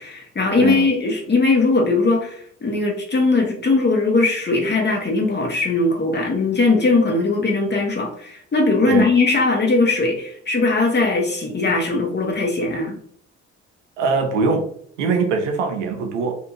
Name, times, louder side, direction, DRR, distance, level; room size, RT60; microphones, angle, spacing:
voice 1, 0.0-13.0, left 3 dB, 30° left, 1 dB, 1.0 m, -19 dB
voice 2, 14.0-14.7 15.0-16.4, right 4 dB, 90° right, 4 dB, 0.5 m, -21 dB
2.7 x 2.4 x 3.0 m, 0.62 s
hypercardioid pair, 45°, 35 cm